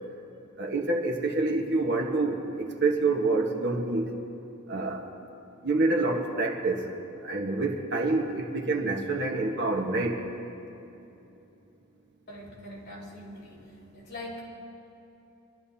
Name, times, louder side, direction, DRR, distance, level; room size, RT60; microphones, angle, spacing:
voice 1, 0.6-4.1 4.7-5.1 5.6-6.9 7.2-10.2, right 3 dB, 55° right, 1 dB, 1.4 m, -27 dB
voice 2, 12.3-14.4, left 1 dB, 50° left, -6 dB, 3.6 m, -43 dB
24.0 x 12.5 x 2.8 m, 3.0 s
head